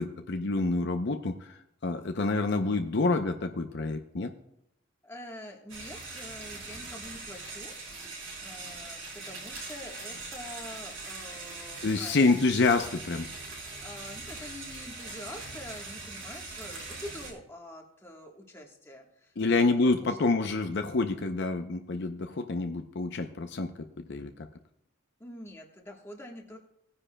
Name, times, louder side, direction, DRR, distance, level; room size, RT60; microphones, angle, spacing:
voice 1, 0.0-4.3 11.8-13.3 19.4-24.5, left 3 dB, 55° left, 6 dB, 0.6 m, -28 dB
voice 2, 5.0-7.7 8.4-12.4 13.8-20.2 25.2-26.6, left 1 dB, 10° left, 0 dB, 1.3 m, -46 dB
sound 1, 5.7-17.3, right 3 dB, 65° right, 4.3 m, -41 dB
18.5 x 9.8 x 2.2 m, 0.78 s
head